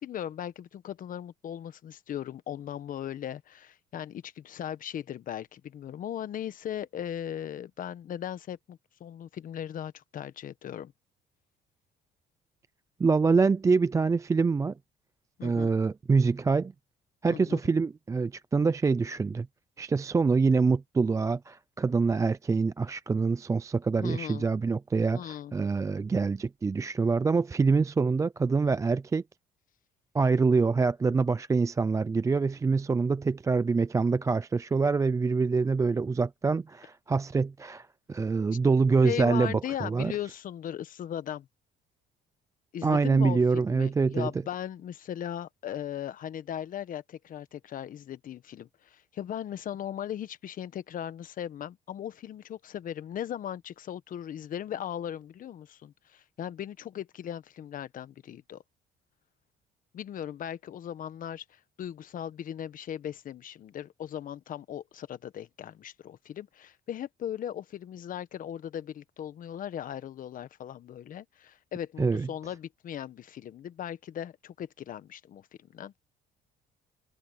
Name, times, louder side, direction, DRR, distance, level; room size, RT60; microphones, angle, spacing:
voice 1, 0.0-10.9 15.4-15.7 17.3-17.6 24.0-24.5 25.1-25.5 39.0-41.5 42.7-43.4 43.7-58.6 59.9-76.0, left 10 dB, 55° left, 1.3 m, -38 dB
voice 2, 13.0-14.7 15.4-16.7 17.2-19.5 19.8-29.2 30.1-40.1 42.8-44.3 72.0-72.3, right 4 dB, 20° right, 0.4 m, -25 dB
cardioid pair, 110°, 17 cm